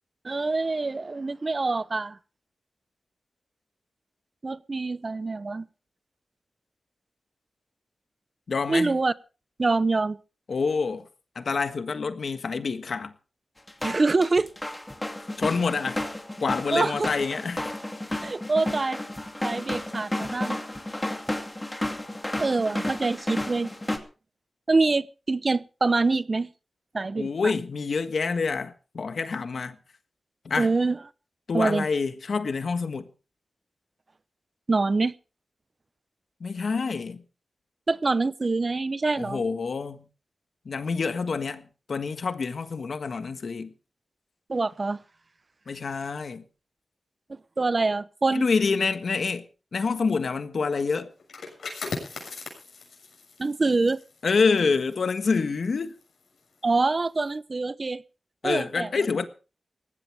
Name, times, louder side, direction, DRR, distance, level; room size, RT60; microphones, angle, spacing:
voice 1, 0.2-2.2 4.4-5.7 8.7-9.1 9.6-10.2 13.8-14.5 16.7-17.1 18.2-19.0 19.4-20.6 22.4-23.7 24.7-26.5 26.9-27.5 30.6-31.0 31.5-31.9 34.7-35.1 37.9-39.4 44.5-45.0 47.6-48.4 53.4-54.0 56.6-58.0 58.4-58.9, right 3 dB, 40° right, 0.7 m, -25 dB
voice 2, 8.5-9.0 10.5-11.1 11.3-13.1 15.4-16.0 16.4-17.7 27.2-29.8 30.4-30.7 31.5-33.1 36.4-37.2 39.2-40.1 40.6-43.7 45.7-46.4 48.3-49.4 49.7-51.1 54.2-55.9 58.4-59.3, left 4 dB, 70° left, 1.5 m, -27 dB
sound 1, 13.7-24.0, left 1 dB, 15° left, 2.4 m, -32 dB
sound 2, 51.2-56.7 57.0-57.3, left 4 dB, 90° left, 7.2 m, -40 dB
19.0 x 16.0 x 3.5 m
wide cardioid pair, 80°, 0 cm